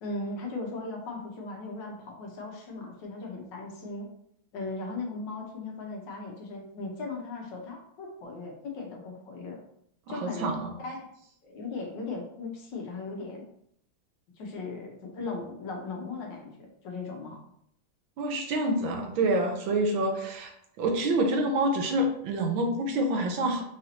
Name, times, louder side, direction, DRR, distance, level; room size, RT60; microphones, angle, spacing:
voice 1, 0.0-4.1 4.5-9.6 10.1-11.1 11.4-13.4 14.4-17.4, left 3 dB, 70° left, 0 dB, 1.3 m, -38 dB
voice 2, 10.1-10.7 18.2-20.5 20.8-23.6, right 1 dB, 75° right, 3 dB, 1.4 m, -27 dB
4.8 x 2.6 x 2.8 m, 0.72 s
omnidirectional pair, 2.2 m